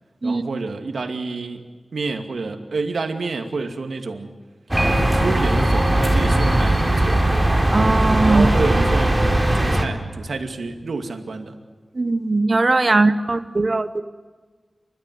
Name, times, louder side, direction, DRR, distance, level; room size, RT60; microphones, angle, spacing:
voice 1, 0.2-1.6 1.9-4.3 5.1-7.3 8.3-9.2 9.5-11.6, right 3 dB, 80° right, 6 dB, 2.4 m, -28 dB
sound 1, 4.7-9.9, right 1 dB, 15° right, 3.4 m, -18 dB
Piano, 4.8-5.7, equal, 10° left, 1.8 m, -30 dB
voice 2, 7.7-8.5 11.9-14.0, right 3 dB, 40° right, 11 dB, 1.1 m, -19 dB
30.0 x 14.0 x 9.5 m, 1.5 s
wide cardioid pair, 90°, 0 cm